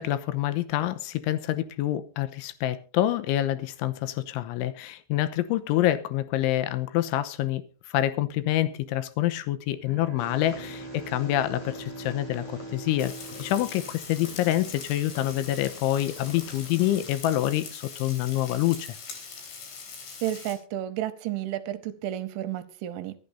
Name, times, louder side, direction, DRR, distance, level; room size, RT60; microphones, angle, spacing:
voice 1, 0.0-7.6 7.9-13.1 13.4-19.0, left 13 dB, 80° left, 3.2 m, -27 dB
Bowed string instrument, 9.5-14.9, right 2 dB, 10° right, 1.9 m, -42 dB
Purr, 10.2-17.1, left 3 dB, 40° left, 3.2 m, -48 dB
Frying (food), 13.0-20.5, left 5 dB, 65° left, 5.8 m, -42 dB
voice 2, 20.2-23.2, right 12 dB, 80° right, 3.2 m, -32 dB
24.0 x 11.5 x 2.7 m
omnidirectional pair, 5.7 m